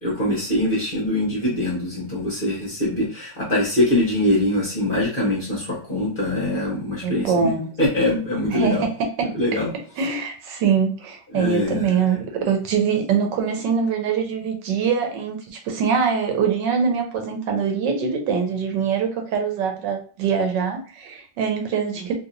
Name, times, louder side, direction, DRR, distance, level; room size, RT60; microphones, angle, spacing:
voice 1, 0.0-7.3 7.8-8.9 9.3-9.7 11.3-11.9, left 1 dB, 35° left, -5 dB, 1.1 m, -23 dB
voice 2, 7.0-7.7 8.5-9.3 10.0-22.1, right 6 dB, 80° right, 4 dB, 1.3 m, -23 dB
3.1 x 2.7 x 2.6 m, 0.40 s
omnidirectional pair, 2.0 m